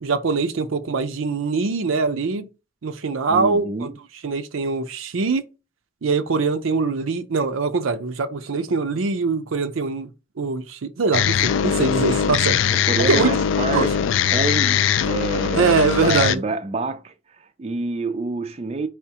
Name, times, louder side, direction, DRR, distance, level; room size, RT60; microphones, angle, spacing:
voice 1, 0.0-2.5 2.8-3.9 4.2-5.4 6.0-10.1 10.4-12.6 13.1-13.3 13.7-13.9 15.5-16.4, right 4 dB, 85° right, 0.5 m, -22 dB
voice 2, 3.3-3.9 12.7-14.0 14.3-15.7 16.0-18.9, right 3 dB, 30° right, 0.3 m, -27 dB
sound 1, 11.1-16.4, left 8 dB, 70° left, 0.3 m, -21 dB
4.8 x 3.5 x 2.8 m
head